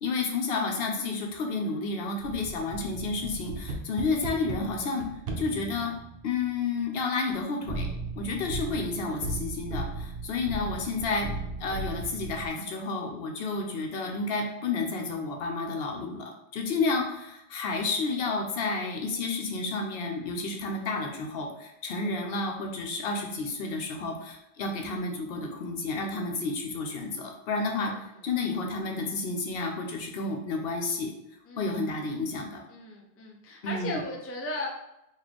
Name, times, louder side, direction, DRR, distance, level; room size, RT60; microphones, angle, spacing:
voice 1, 0.0-5.1 5.4-5.9 6.2-7.9 8.2-11.3 11.6-27.9 28.2-31.1 31.6-32.6 33.6-34.0, left 3 dB, 70° left, 2 dB, 0.8 m, -31 dB
sound 1, 2.2-6.9 7.7-12.5, right 2 dB, 65° right, 0.7 m, -37 dB
voice 2, 31.5-31.8 32.7-34.7, left 2 dB, 20° left, 0 dB, 0.4 m, -36 dB
3.0 x 2.5 x 4.0 m, 0.85 s
omnidirectional pair, 1.1 m